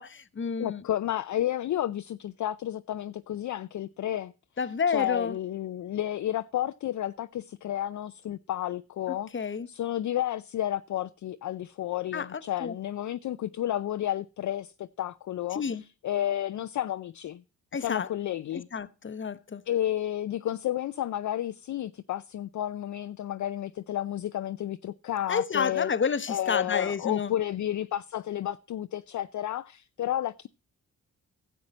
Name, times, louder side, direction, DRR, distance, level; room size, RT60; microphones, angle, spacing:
voice 1, 0.0-0.8 4.6-5.3 9.1-9.7 12.1-12.7 15.5-15.8 17.7-18.1 18.5-19.6 25.3-27.3, left 6 dB, 30° left, 0.8 m, -30 dB
voice 2, 0.6-4.3 4.9-17.4 17.8-18.7 19.7-25.9 26.3-30.5, left 12 dB, 50° left, 0.5 m, -31 dB
11.5 x 7.5 x 5.2 m
supercardioid pair, 50°, 37 cm